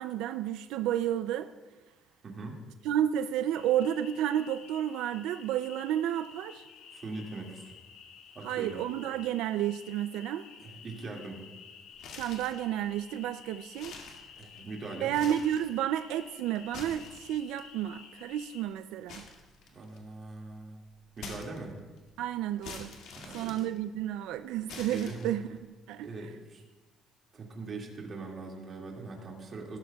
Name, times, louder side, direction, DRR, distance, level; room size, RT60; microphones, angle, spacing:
voice 1, 0.0-1.5 2.8-6.6 8.4-10.4 12.2-13.9 15.0-19.2 22.2-23.0 23.3-25.4 25.9-26.1, right 11 dB, 90° right, 10 dB, 0.4 m, -31 dB
voice 2, 2.2-2.6 6.9-7.7 8.4-8.8 10.6-11.4 14.4-15.2 19.7-20.8 21.2-21.8 23.2-23.6 24.7-25.3 26.0-26.6 27.3-29.8, right 3 dB, 30° right, -1 dB, 2.0 m, -41 dB
sound 1, 3.5-18.6, left 7 dB, 90° left, 1.2 m, -52 dB
sound 2, 11.9-12.6 13.1-13.2 13.7-14.7 15.0-15.7 16.5-17.6 19.1-20.1 21.2-22.0 22.6-24.2 24.7-25.6, left 4 dB, 70° left, 2.0 m, -46 dB
18.5 x 13.0 x 2.3 m, 1.3 s
cardioid pair, 170°, 0 cm